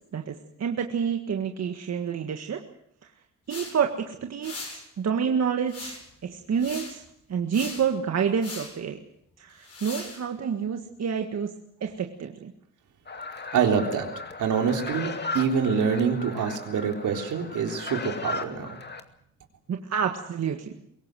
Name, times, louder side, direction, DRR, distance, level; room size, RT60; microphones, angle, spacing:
voice 1, 0.1-2.6 3.5-4.7 5.0-6.0 6.2-7.0 7.3-9.0 9.4-11.5 11.8-12.5 19.7-20.7, right 7 dB, 60° right, 4 dB, 1.7 m, -28 dB
sound 1, 3.5-3.7 4.4-4.8 5.7-6.1 6.6-7.0 7.5-7.9 8.4-8.7 9.6-10.2, left 3 dB, 55° left, 7.8 m, -39 dB
sound 2, 13.1-19.0, left 3 dB, 35° left, 2.2 m, -36 dB
voice 2, 13.5-14.1 14.4-18.8, right 6 dB, 80° right, 3 dB, 3.7 m, -26 dB
23.0 x 18.0 x 7.7 m, 0.73 s
cardioid pair, 85°, 30 cm